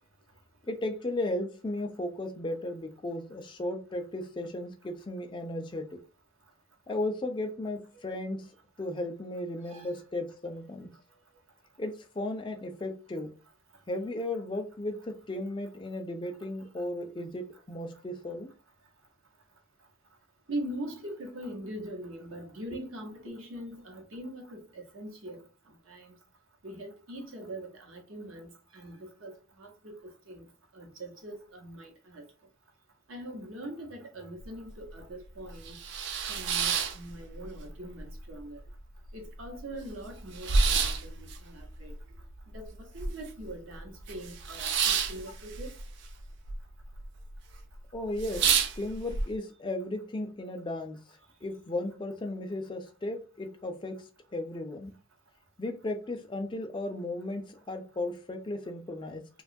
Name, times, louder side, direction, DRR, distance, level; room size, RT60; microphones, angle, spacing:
voice 1, 0.7-6.0 6.9-8.5 8.8-10.9 11.8-13.3 13.9-18.5 47.9-51.0 51.4-54.9 55.6-59.3, left 1 dB, 20° left, 0.3 m, -35 dB
voice 2, 20.5-25.4 25.9-26.1 26.6-30.5 30.7-32.2 33.1-35.8 36.3-38.6 39.1-41.9 42.5-45.8, right 1 dB, 70° right, 0.8 m, -42 dB
sound 1, 34.4-34.5 34.9-35.0 35.5-37.7 38.0-38.7 39.1-39.2 39.3-43.5 43.8-46.6 46.8-47.4 47.7-47.8 48.1-49.2, right 5 dB, 55° right, 0.3 m, -29 dB
2.8 x 2.2 x 2.5 m
head